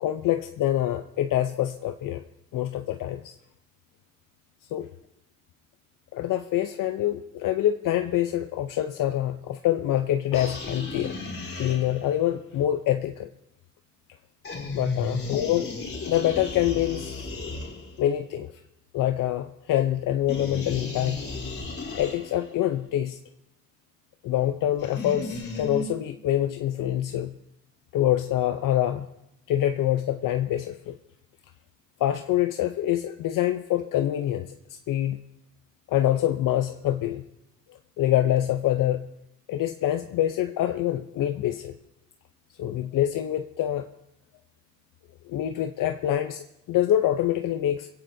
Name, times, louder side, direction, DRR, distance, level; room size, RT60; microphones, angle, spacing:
voice 1, 0.0-2.2 2.5-3.3 4.7-4.9 6.1-11.1 11.6-13.3 14.7-15.7 16.0-17.1 18.0-18.5 18.9-21.3 21.9-23.2 24.2-27.4 27.9-29.1 29.5-30.9 32.0-34.5 34.9-35.2 35.9-37.2 38.0-39.1 39.5-41.7 42.6-43.9 45.3-47.9, left 12 dB, 75° left, 7 dB, 0.7 m, -25 dB
sound 1, 10.3-12.2 14.4-18.2 20.3-22.5 24.8-25.9, left 2 dB, 40° left, 3.9 m, -35 dB
22.0 x 16.5 x 2.7 m, 0.85 s
cardioid pair, 90°, 33 cm